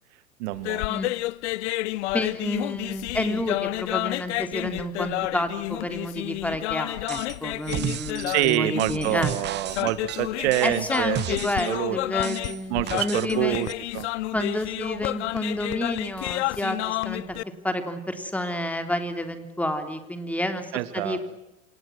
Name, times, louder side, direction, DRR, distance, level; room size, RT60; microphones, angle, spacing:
voice 1, 0.4-0.9 8.3-11.2 11.7-12.0 12.7-13.7 13.9-14.1 20.7-21.2, right 16 dB, 50° right, 15 dB, 1.8 m, -26 dB
sound 1, 0.5-17.4, left 18 dB, 55° left, 0.9 m, -30 dB
voice 2, 2.1-9.3 10.6-13.6 14.3-17.4 17.6-21.2, left 1 dB, 5° left, 7 dB, 3.4 m, -30 dB
sound 2, 7.1-7.4 7.6-11.8 12.2-13.4 13.6-13.7, right 11 dB, 25° right, 1.0 m, -34 dB
28.0 x 26.5 x 6.2 m, 0.90 s
figure-of-eight pair, 90°, 41 cm